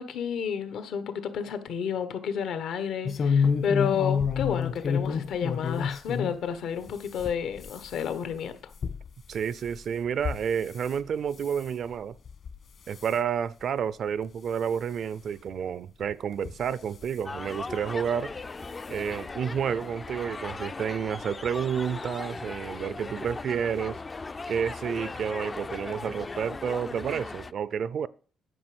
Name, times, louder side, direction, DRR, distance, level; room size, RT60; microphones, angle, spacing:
voice 1, 0.0-8.6, left 7 dB, 80° left, 1.3 m, -31 dB
sound 1, 3.1-6.4 6.8-11.0 11.3-11.7 12.3-12.6 12.9-13.2 13.8-13.9 14.2-14.3 15.5-15.6 16.3-17.2 18.3-18.5 18.8-18.9 19.3-19.4, left 6 dB, 55° left, 1.4 m, -30 dB
voice 2, 9.3-12.1 12.9-18.3 18.9-24.0 24.5-28.1, right 7 dB, 60° right, 0.5 m, -30 dB
sound 2, 17.3-27.5, left 3 dB, 30° left, 0.4 m, -38 dB
9.9 x 5.0 x 7.8 m
cardioid pair, 90°, 0 cm